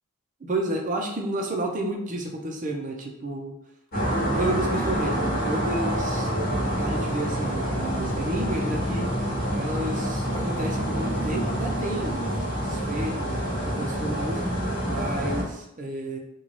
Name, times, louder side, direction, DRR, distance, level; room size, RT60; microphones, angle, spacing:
voice 1, 0.4-3.5 4.2-9.1 9.5-14.4 14.9-16.2, right 1 dB, 35° right, 1 dB, 0.5 m, -31 dB
sound 1, 3.9-15.4, equal, 45° left, 1.1 m, -27 dB
3.8 x 2.3 x 3.1 m, 0.79 s
head